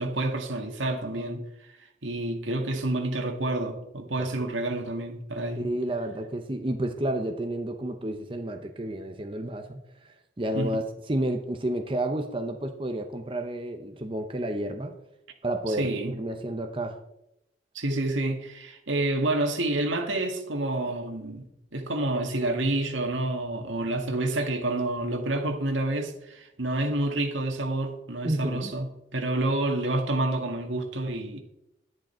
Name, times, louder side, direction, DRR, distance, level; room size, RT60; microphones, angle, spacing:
voice 1, 0.0-1.4 1.7-5.7 10.5-10.7 15.7-16.1 17.7-21.4 21.7-28.9 29.1-31.4, right 2 dB, 85° right, 2.0 m, -28 dB
voice 2, 5.6-15.0 15.4-17.0 28.2-28.7, right 1 dB, 25° right, 0.8 m, -31 dB
11.5 x 10.5 x 4.4 m
head